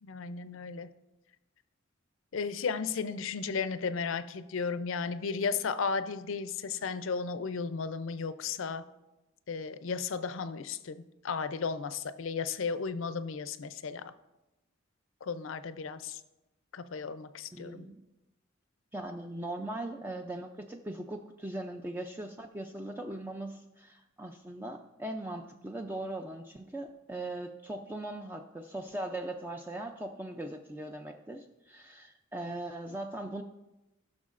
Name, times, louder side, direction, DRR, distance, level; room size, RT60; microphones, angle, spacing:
voice 1, 0.0-0.9 2.3-8.8 9.5-14.1 15.2-16.2 16.7-17.9, left 5 dB, 80° left, 12 dB, 0.5 m, -34 dB
voice 2, 17.5-18.0 18.9-33.4, right 1 dB, 10° right, 4 dB, 0.3 m, -40 dB
14.0 x 6.2 x 2.5 m, 0.98 s
head